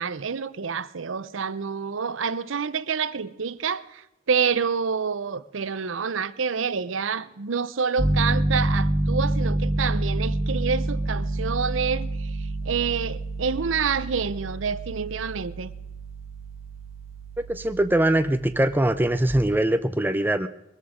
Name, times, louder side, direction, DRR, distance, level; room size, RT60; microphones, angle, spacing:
voice 1, 0.0-4.0 4.3-12.3 12.7-15.7, right 6 dB, 75° right, 0.7 m, -27 dB
Piano, 8.0-19.3, right 1 dB, 30° right, 1.5 m, -28 dB
voice 2, 17.5-20.5, right 1 dB, 10° right, 0.5 m, -22 dB
21.5 x 13.5 x 5.0 m
head